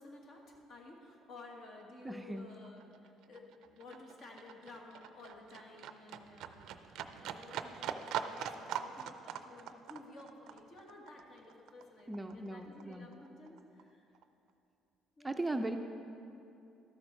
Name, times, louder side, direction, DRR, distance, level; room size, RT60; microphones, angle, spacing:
voice 1, 0.0-6.7 7.1-14.1 15.2-15.8, left 2 dB, 55° left, 0 dB, 1.7 m, -54 dB
Livestock farm animals working animals, 1.1-1.2 1.5-12.5 12.8-13.8 14.1-14.2, right 9 dB, 75° right, 0.4 m, -43 dB
voice 2, 2.0-2.5 12.1-13.1 15.2-15.8, right 2 dB, 10° right, 6 dB, 0.5 m, -38 dB
13.0 x 6.7 x 4.6 m, 2.7 s
cardioid pair, 100°, 0 cm